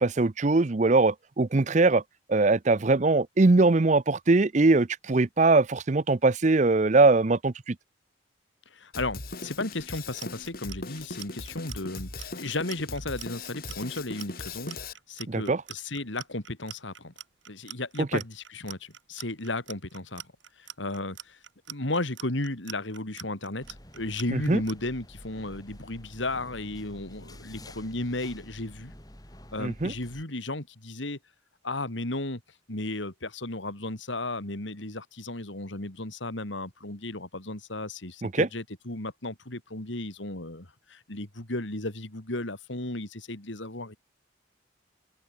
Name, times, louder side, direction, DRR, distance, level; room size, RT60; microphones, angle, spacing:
voice 1, 0.0-2.0 2.3-7.8 15.3-15.6 18.0-18.2 24.3-24.6 29.6-29.9 38.2-38.5, right 3 dB, 40° right, 0.6 m, -22 dB
voice 2, 8.7-14.8 15.1-17.1 17.5-20.2 20.6-21.4 21.7-28.9 29.5-31.2 31.6-32.4 32.7-44.0, left 2 dB, 75° left, 3.1 m, -34 dB
Drum kit, 8.9-14.9, left 3 dB, 50° left, 5.7 m, -39 dB
Clock, 9.9-24.7, right 12 dB, 75° right, 3.5 m, -44 dB
sound 1, 23.6-30.2, left 1 dB, 20° left, 7.8 m, -48 dB
open air
head